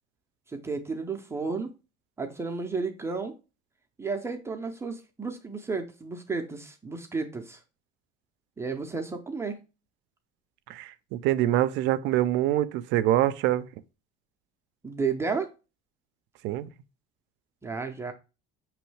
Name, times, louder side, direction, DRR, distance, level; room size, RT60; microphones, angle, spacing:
voice 1, 0.5-1.7 2.2-3.3 4.0-7.6 8.6-9.6 14.8-15.5 17.6-18.1, right 4 dB, 15° right, 0.5 m, -32 dB
voice 2, 10.7-13.7 16.4-16.7, right 13 dB, 65° right, 0.4 m, -25 dB
5.4 x 3.0 x 3.2 m
cardioid pair, 145°, 21 cm